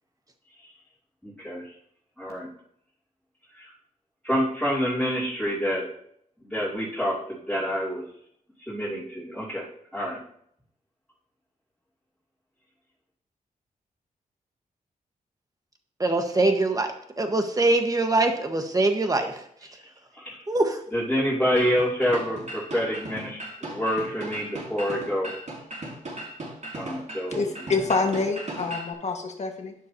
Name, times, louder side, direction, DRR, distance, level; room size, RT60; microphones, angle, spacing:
voice 1, 1.2-1.6 2.2-2.5 3.6-3.7 4.2-5.9 6.5-7.2 7.5-8.0 8.7-9.6 9.9-10.2 20.2-20.3 20.9-23.4 23.7-25.3 26.7-27.4, equal, 5° left, -9 dB, 2.8 m, -27 dB
voice 2, 16.0-16.9 17.2-19.3 20.5-20.8, right 2 dB, 25° right, 5 dB, 1.4 m, -23 dB
sound 1, 21.6-28.9, right 1 dB, 55° right, 4.6 m, -37 dB
voice 3, 27.3-29.7, left 4 dB, 50° left, 3 dB, 1.6 m, -27 dB
11.5 x 9.8 x 2.8 m, 0.67 s
wide cardioid pair, 105°, 15 cm